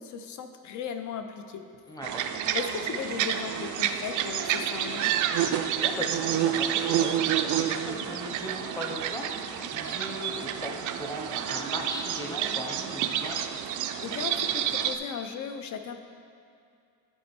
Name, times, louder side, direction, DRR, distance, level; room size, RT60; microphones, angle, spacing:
voice 1, 0.0-1.6 2.5-5.2 14.0-16.0, left 7 dB, 55° left, 7 dB, 0.6 m, -36 dB
voice 2, 1.9-2.2 5.8-13.4, equal, 10° left, -1 dB, 0.8 m, -38 dB
sound 1, 2.0-15.0, right 10 dB, 60° right, 0.4 m, -29 dB
12.5 x 4.3 x 4.3 m, 2.4 s
cardioid pair, 170°, 35 cm